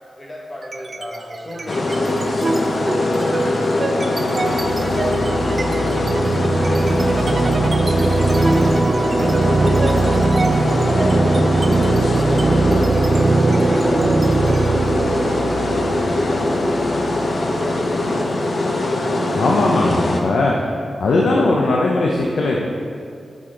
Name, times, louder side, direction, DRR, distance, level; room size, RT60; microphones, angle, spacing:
voice 1, 0.2-2.1 2.5-5.7 6.2-7.0 7.3-8.9 9.2-10.5 10.9-15.2 15.9-19.2 19.6-20.7 21.2-21.5, equal, 25° left, -3 dB, 1.7 m, -34 dB
sound 1, 0.6-1.2 1.5-18.1, right 3 dB, 45° right, 0.4 m, -21 dB
sound 2, 1.7-20.2, left 2 dB, 50° left, 0.8 m, -21 dB
voice 2, 19.3-20.5 21.0-22.7, left 2 dB, 85° left, -2 dB, 0.7 m, -18 dB
8.7 x 6.3 x 3.8 m, 2.3 s
cardioid pair, 80°, 0 cm